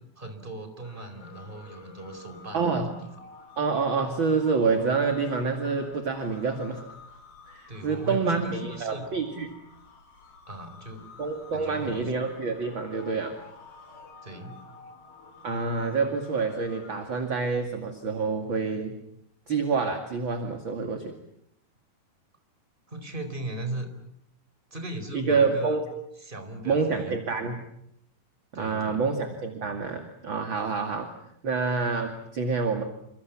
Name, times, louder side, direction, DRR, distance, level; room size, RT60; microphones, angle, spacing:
voice 1, 0.2-3.1 7.7-9.3 10.5-11.1 11.5-12.2 14.2-14.7 22.9-23.9 24.7-25.8 26.2-27.2 28.5-29.1, right 2 dB, 15° right, 7 dB, 4.1 m, -37 dB
sound 1, 0.8-17.3, left 4 dB, 75° left, 7.0 m, -49 dB
voice 2, 2.5-2.9 3.6-6.9 7.5-9.5 11.2-13.4 15.4-19.0 19.5-21.1 25.1-25.9 26.6-27.6 28.5-31.1 31.4-32.8, right 4 dB, 35° right, 5 dB, 2.6 m, -27 dB
29.0 x 26.0 x 7.4 m, 0.73 s
omnidirectional pair, 4.3 m